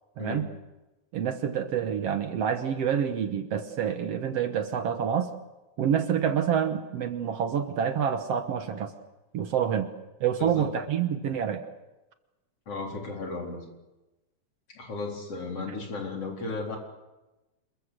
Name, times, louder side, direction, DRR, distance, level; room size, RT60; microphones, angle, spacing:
voice 1, 0.2-0.5 1.1-5.3 5.8-8.9 9.3-9.9 10.2-11.7, right 8 dB, 65° right, 8 dB, 2.1 m, -27 dB
voice 2, 12.7-13.6 14.7-16.8, left 3 dB, 55° left, 1 dB, 5.1 m, -35 dB
27.5 x 22.5 x 6.6 m, 1.0 s
omnidirectional pair, 3.3 m